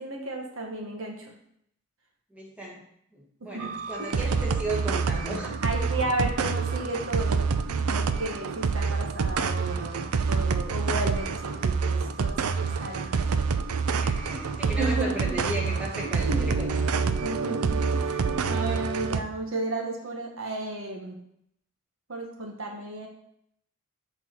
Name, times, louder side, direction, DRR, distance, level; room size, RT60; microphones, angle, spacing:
voice 1, 0.0-1.3 3.4-3.7 4.0-4.1 5.6-13.2 14.8-15.3 16.0-16.4 17.2-21.1 22.1-23.1, right 2 dB, 65° right, 1 dB, 1.3 m, -33 dB
voice 2, 2.3-2.8 3.1-5.6 14.0-17.1, right 1 dB, 5° right, -4 dB, 1.5 m, -35 dB
sound 1, 3.6-19.2, right 5 dB, 85° right, 0.5 m, -27 dB
8.1 x 4.1 x 4.4 m, 0.72 s
head